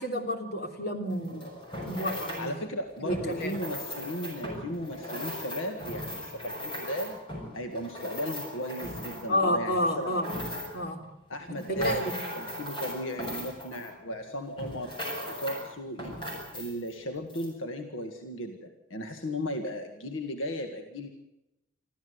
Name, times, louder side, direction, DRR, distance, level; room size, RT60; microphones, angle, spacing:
voice 1, 0.0-1.5 1.8-2.5 3.0-3.5 9.3-10.3 10.7-11.0 11.5-12.2, left 1 dB, 50° left, 4 dB, 3.4 m, -30 dB
sound 1, 1.1-2.5 3.0-9.4 9.9-10.9 11.4-14.2 14.6-15.7 16.0-16.9 17.3-17.5, left 1 dB, 25° left, 6.6 m, -38 dB
voice 2, 2.4-7.2 7.5-10.2 11.3-15.0 15.3-16.1 16.5-21.1, equal, 75° left, 5 dB, 1.9 m, -36 dB
26.0 x 14.5 x 8.0 m, 0.90 s
head